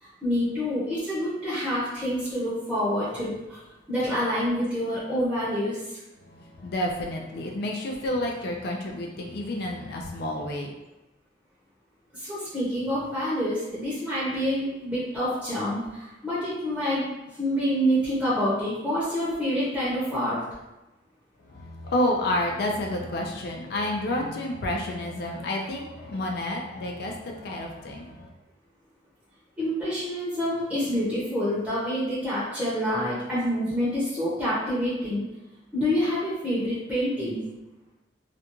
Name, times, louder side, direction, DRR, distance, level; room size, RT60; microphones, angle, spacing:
voice 1, 0.0-3.6 3.9-6.0 12.1-20.4 29.6-35.2 35.7-37.4, equal, 5° right, -10 dB, 0.7 m, -27 dB
voice 2, 6.2-10.7 21.5-28.3, left 1 dB, 60° left, 1 dB, 0.4 m, -30 dB
2.5 x 2.2 x 2.9 m, 1.0 s
head